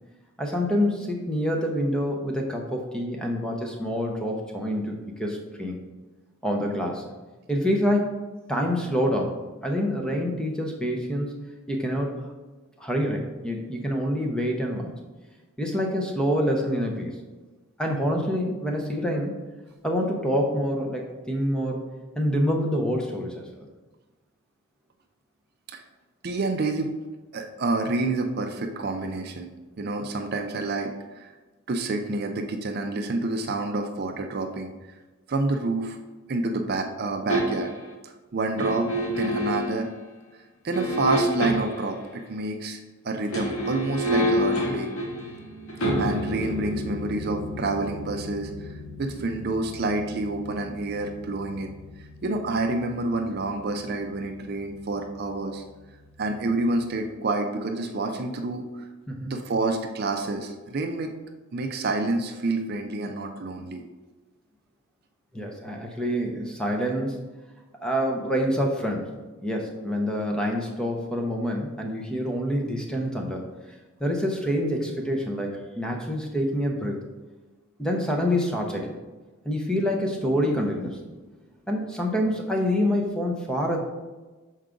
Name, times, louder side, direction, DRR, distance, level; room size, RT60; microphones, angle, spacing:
voice 1, 0.4-5.8 6.4-7.0 7.5-8.2 8.5-11.3 11.7-12.2 12.8-14.9 15.6-17.2 17.8-19.3 19.8-21.8 22.2-23.6 59.1-59.3 65.3-67.2 67.8-69.1 69.4-77.0 77.8-79.0 79.4-81.0 81.7-83.8, equal, 5° left, 1 dB, 0.7 m, -26 dB
voice 2, 26.2-26.9 27.3-29.5 29.8-31.3 31.7-34.7 35.3-36.0 36.3-37.7 38.0-39.9 40.6-42.8 43.0-44.9 46.0-48.7 49.0-55.6 56.2-58.9 59.2-61.1 61.5-63.8, right 2 dB, 45° right, 5 dB, 0.4 m, -28 dB
sound 1, 37.3-37.9 38.6-39.8 40.7-41.9 43.2-54.1 54.4-54.5, equal, 80° left, 1.3 m, -30 dB
6.3 x 4.6 x 3.8 m, 1.2 s
head